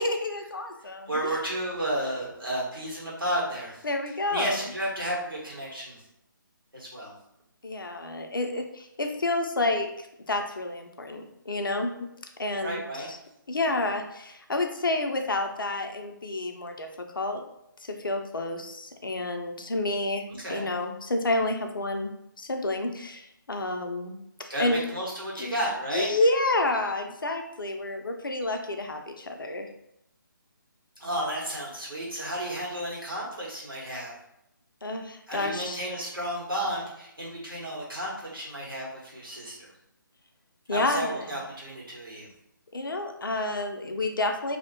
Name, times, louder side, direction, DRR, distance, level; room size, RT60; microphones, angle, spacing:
voice 1, 0.0-1.4 3.8-4.7 7.6-12.1 12.4-13.2 13.5-17.4 17.8-22.1 22.4-24.8 25.4-25.5 25.9-29.7 34.8-35.8 40.7-41.3 42.7-44.6, left 2 dB, 75° left, 4 dB, 0.5 m, -29 dB
voice 2, 1.1-3.8 4.3-6.0 6.7-7.1 12.6-13.1 20.3-20.7 24.5-26.1 31.0-34.1 35.3-39.7 40.7-42.3, right 1 dB, 85° right, -5 dB, 1.4 m, -32 dB
2.6 x 2.1 x 2.8 m, 0.81 s
figure-of-eight pair, 145°, 11 cm